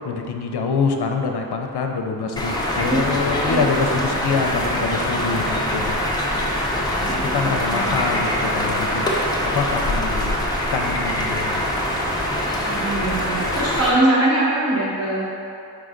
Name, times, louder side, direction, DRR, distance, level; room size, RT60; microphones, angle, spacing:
voice 1, 0.0-6.0 7.0-9.1 9.5-10.3 10.7-11.6, left 5 dB, 75° left, 3 dB, 0.6 m, -25 dB
sound 1, 2.4-13.9, left 1 dB, 10° left, 0.5 m, -23 dB
voice 2, 3.1-3.7 7.0-8.0 12.7-15.4, right 1 dB, 40° right, -7 dB, 1.3 m, -23 dB
4.8 x 3.8 x 5.1 m, 2.7 s
wide cardioid pair, 170°, 40 cm